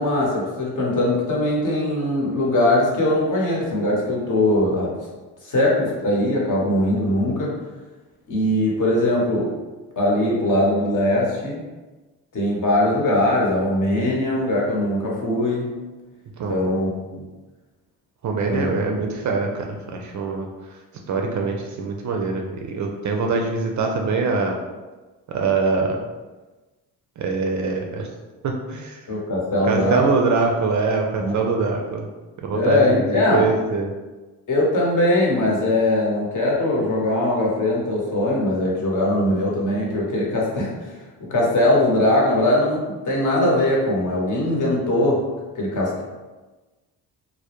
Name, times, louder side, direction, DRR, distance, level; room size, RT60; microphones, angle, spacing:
voice 1, 0.0-5.0 5.4-7.5 8.3-9.6 10.0-11.6 12.3-15.7 16.5-17.3 18.4-18.7 29.1-30.0 31.2-31.4 32.5-33.5 34.5-45.3 45.5-46.0, left 1 dB, 45° left, -3 dB, 0.9 m, -21 dB
voice 2, 18.2-20.5 21.1-24.6 25.3-26.0 27.2-28.1 28.4-29.0 29.6-32.1 32.4-33.9, right 4 dB, 45° right, 2 dB, 0.4 m, -23 dB
2.1 x 2.0 x 2.9 m, 1.2 s
supercardioid pair, 55°, 42 cm